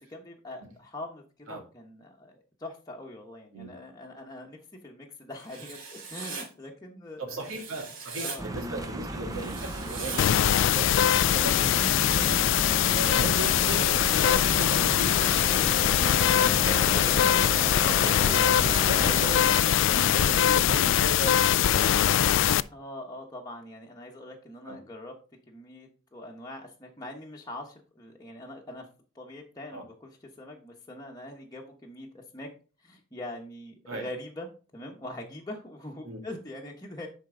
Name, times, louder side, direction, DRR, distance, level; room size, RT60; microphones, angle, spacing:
voice 1, 0.0-7.5 8.2-8.5 16.5-16.9 22.7-25.2 25.5-28.9 29.1-32.5 32.8-34.5 34.7-37.1, left 1 dB, 20° left, -1 dB, 1.1 m, -43 dB
Writing, 5.4-6.5 7.4-8.4 9.3-10.2 11.3-12.3 13.4-14.4, right 5 dB, 65° right, 3.1 m, -41 dB
voice 2, 7.2-12.4 12.9-16.1 16.6-22.4 24.7-24.8 29.7-29.8 33.9-34.1 36.0-36.2, right 2 dB, 80° right, 2 dB, 2.6 m, -37 dB
sound 1, 8.4-19.4, right 1 dB, 15° right, 0.8 m, -35 dB
sound 2, 10.2-22.6, left 10 dB, 60° left, 0.3 m, -22 dB
10.5 x 4.5 x 3.8 m, 0.35 s
head